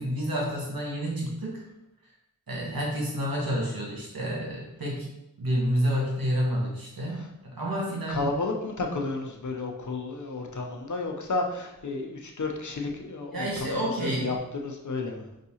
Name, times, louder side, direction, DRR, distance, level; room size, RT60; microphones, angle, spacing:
voice 1, 0.0-1.6 2.5-5.1 5.4-8.3 13.3-14.3, equal, 85° right, -3 dB, 1.2 m, -29 dB
voice 2, 8.1-15.2, left 3 dB, 55° left, 1 dB, 0.7 m, -32 dB
5.2 x 2.7 x 2.8 m, 0.88 s
wide cardioid pair, 45°, 35 cm